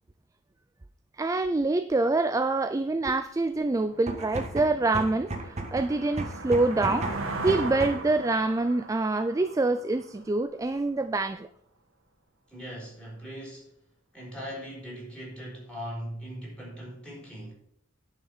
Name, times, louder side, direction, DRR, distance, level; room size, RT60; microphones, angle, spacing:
voice 1, 1.2-11.5, right 2 dB, 15° right, 0.3 m, -26 dB
sound 1, 3.6-3.7 4.2-10.8, right 2 dB, 85° right, 1.8 m, -39 dB
sound 2, 3.9-8.2, right 2 dB, 35° right, 1.5 m, -35 dB
voice 2, 12.5-13.7 14.1-17.5, equal, 5° left, 4.6 m, -40 dB
10.5 x 5.8 x 5.5 m
head